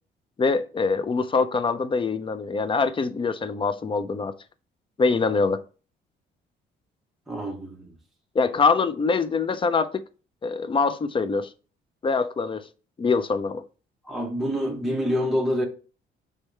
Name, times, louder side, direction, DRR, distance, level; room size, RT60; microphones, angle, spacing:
voice 1, 0.4-4.3 5.0-5.6 8.3-10.0 10.4-11.5 12.0-12.7 13.0-13.6, left 4 dB, 25° left, 0.4 m, -24 dB
voice 2, 7.3-7.9 14.0-15.7, equal, ahead, 0.9 m, -26 dB
4.7 x 3.3 x 3.2 m
cardioid pair, 90°, 20 cm